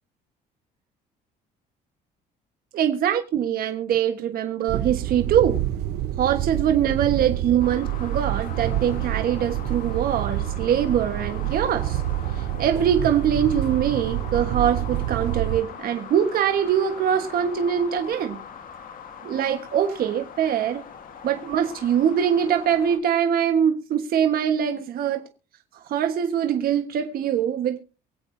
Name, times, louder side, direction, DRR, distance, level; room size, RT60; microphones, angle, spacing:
voice 1, 2.7-5.6 6.2-12.0 12.4-18.4 19.2-20.8 21.2-25.3 25.7-27.8, right 9 dB, 60° right, 1.4 m, -23 dB
sound 1, 4.7-15.6, right 13 dB, 75° right, 0.9 m, -28 dB
sound 2, 7.6-23.0, left 7 dB, 55° left, 2.2 m, -41 dB
24.0 x 8.3 x 2.7 m
cardioid pair, 110°, 17 cm